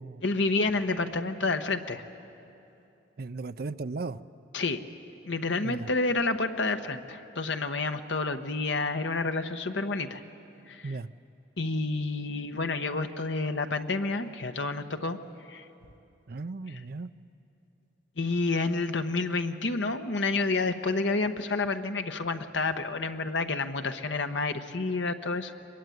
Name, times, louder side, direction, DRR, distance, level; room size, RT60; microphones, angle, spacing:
voice 1, 0.2-2.0 4.5-4.8 5.3-10.2 10.7-10.9 11.6-15.2 15.5-15.7 18.2-25.5, left 3 dB, 70° left, 7 dB, 1.1 m, -29 dB
voice 2, 3.2-4.2 5.6-5.9 10.8-11.1 16.3-17.1, right 3 dB, 55° right, 11 dB, 0.5 m, -36 dB
23.0 x 22.5 x 9.3 m, 2.8 s
head